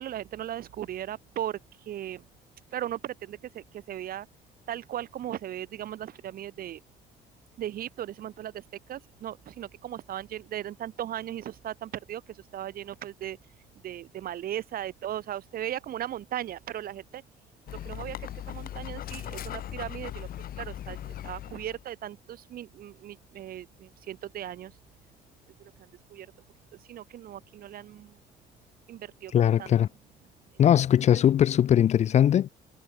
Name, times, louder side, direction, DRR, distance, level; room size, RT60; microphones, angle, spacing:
voice 1, 0.0-1.6 1.9-2.2 2.7-4.3 4.7-6.8 7.6-8.6 8.9-12.2 12.5-13.4 13.8-17.2 17.7-20.3 20.6-21.0 21.2-24.7 25.6-25.7 26.1-26.3 26.9-28.1 28.9-29.7 30.6-30.7, right 11 dB, 60° right, 2.6 m, -37 dB
Dog, 17.7-21.8, left 11 dB, 60° left, 2.9 m, -39 dB
voice 2, 29.3-29.9 30.6-32.5, left 10 dB, 45° left, 0.5 m, -20 dB
cardioid pair, 110°, 17 cm